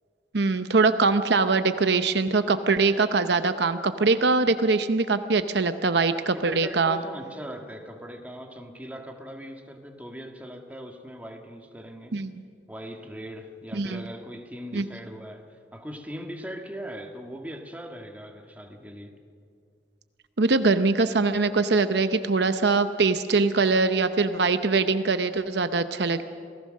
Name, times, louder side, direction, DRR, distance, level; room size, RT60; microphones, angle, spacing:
voice 1, 0.3-7.0 12.1-12.3 13.7-14.0 14.7-14.8 20.4-26.2, right 3 dB, 65° right, 10 dB, 0.8 m, -22 dB
voice 2, 6.3-12.1 12.7-19.1, equal, 10° right, 3 dB, 1.7 m, -40 dB
27.5 x 18.0 x 6.5 m, 2.3 s
head